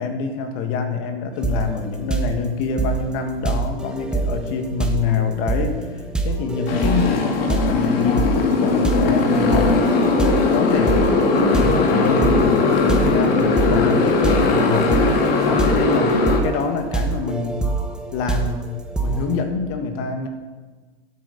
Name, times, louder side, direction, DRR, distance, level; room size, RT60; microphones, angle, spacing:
voice 1, 0.0-9.8 10.5-11.1 11.4-14.9 15.4-17.7 18.1-18.7 19.0-20.3, left 5 dB, 40° left, 6 dB, 1.8 m, -26 dB
sound 1, 1.4-1.8 2.1-19.4, right 3 dB, 5° right, 0.9 m, -26 dB
Motorcycle, 6.7-16.4, left 3 dB, 65° left, 2.1 m, -19 dB
11.5 x 8.6 x 6.6 m, 1.4 s
hypercardioid pair, 140°, 31 cm